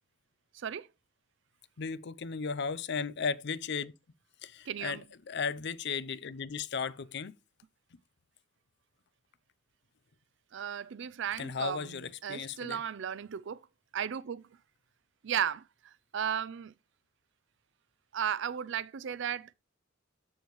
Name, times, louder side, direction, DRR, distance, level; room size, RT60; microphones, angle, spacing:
voice 1, 0.5-0.9 4.7-5.0 10.5-13.6 13.9-14.4 15.2-16.7 18.1-19.5, right 8 dB, 65° right, 0.4 m, -35 dB
voice 2, 1.8-3.9 4.4-5.0 5.3-7.3 11.4-12.8, left 5 dB, 60° left, 0.5 m, -35 dB
13.5 x 4.6 x 3.1 m
head